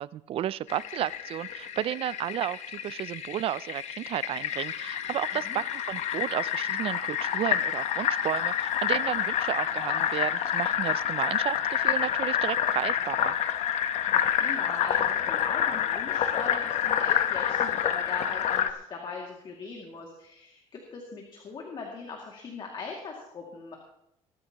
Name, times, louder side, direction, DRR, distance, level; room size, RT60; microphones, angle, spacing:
voice 1, 0.0-13.4, right 11 dB, 50° right, 19 dB, 0.4 m, -32 dB
Fill (with liquid), 0.7-18.7, left 9 dB, 65° left, 1.0 m, -28 dB
voice 2, 14.1-23.8, left 4 dB, 40° left, 0 dB, 2.3 m, -40 dB
21.0 x 13.5 x 2.9 m, 0.80 s
cardioid pair, 135°, 12 cm